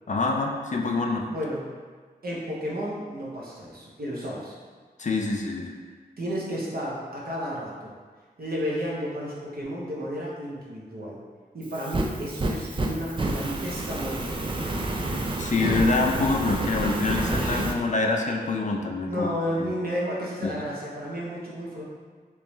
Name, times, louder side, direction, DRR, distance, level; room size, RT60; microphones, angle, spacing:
voice 1, 0.1-1.2 5.0-5.7 15.4-19.3 19.6-19.7 20.4-20.5, left 3 dB, 45° left, 1 dB, 0.5 m, -26 dB
voice 2, 1.3-1.6 2.2-4.6 6.2-7.9 8.4-11.2 11.5-14.7 19.0-21.8, equal, 60° right, -5 dB, 0.9 m, -32 dB
Fire, 11.6-17.8, right 2 dB, 30° right, 0.5 m, -29 dB
3.3 x 3.0 x 3.1 m, 1.5 s
cardioid pair, 50°, 17 cm